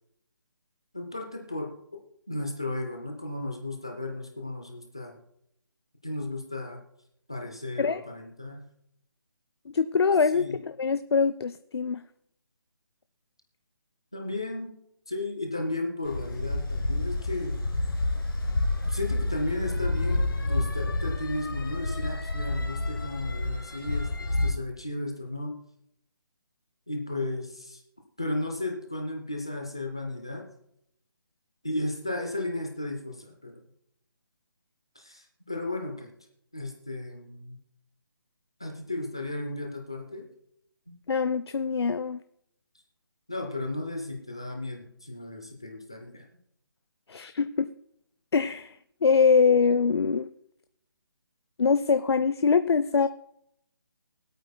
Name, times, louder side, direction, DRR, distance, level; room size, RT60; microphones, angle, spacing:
voice 1, 0.9-2.0 2.3-5.2 6.0-6.8 7.3-8.6 10.3-10.6 14.1-14.7 15.1-17.6 18.9-25.6 26.9-27.8 28.2-30.5 31.6-33.6 35.0-36.1 36.5-37.6 38.6-40.3 40.9-41.0 43.3-46.3, left 2 dB, 10° left, 2 dB, 0.4 m, -34 dB
voice 2, 9.7-12.0 41.1-42.2 47.1-47.7 48.3-48.8 49.0-50.3 51.6-53.1, left 5 dB, 85° left, 11 dB, 0.5 m, -23 dB
sound 1, 16.1-24.5, left 2 dB, 55° left, 2.4 m, -29 dB
23.5 x 8.5 x 2.2 m, 0.75 s
hypercardioid pair, 180°, 13 cm